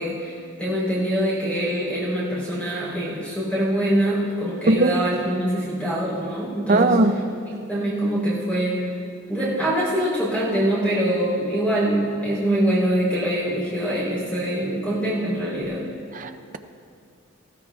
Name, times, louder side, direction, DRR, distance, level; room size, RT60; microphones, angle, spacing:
voice 1, 0.0-7.0 7.7-8.9 9.3-15.8, right 1 dB, 5° left, -8 dB, 3.6 m, -24 dB
voice 2, 4.7-5.0 6.7-7.1 16.2-16.6, right 2 dB, 35° right, 8 dB, 0.6 m, -19 dB
19.5 x 15.0 x 2.4 m, 2.4 s
head